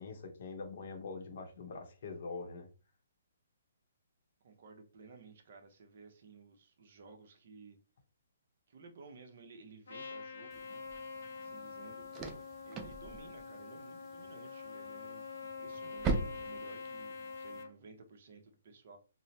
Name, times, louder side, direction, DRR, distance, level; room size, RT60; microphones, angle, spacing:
voice 1, 0.0-2.7, left 4 dB, 55° left, 0.7 m, -44 dB
voice 2, 4.4-7.8 8.7-10.8 11.3-12.1 12.6-19.0, right 4 dB, 50° right, 0.7 m, -55 dB
Trumpet, 9.9-17.7, left 4 dB, 90° left, 0.6 m, -45 dB
sound 1, 10.5-17.6, right 4 dB, 20° right, 0.3 m, -42 dB
3.0 x 2.0 x 2.6 m
hypercardioid pair, 160°, 0 cm